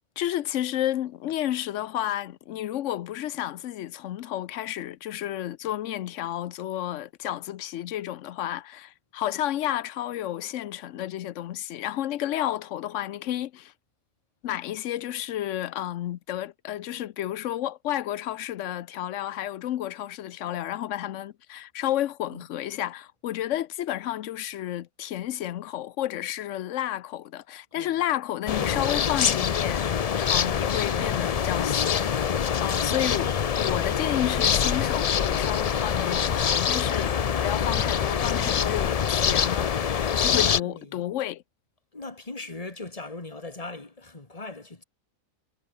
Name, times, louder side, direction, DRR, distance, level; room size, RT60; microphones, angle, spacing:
voice 1, 0.2-13.7 14.4-29.9 30.2-32.1 32.6-37.1 37.4-41.4, left 12 dB, 65° left, 0.9 m, -31 dB
sound 1, 28.5-40.6, left 7 dB, 90° left, 0.3 m, -25 dB
voice 2, 40.2-41.0 41.9-44.8, left 2 dB, 25° left, 2.4 m, -40 dB
omnidirectional pair, 1.5 m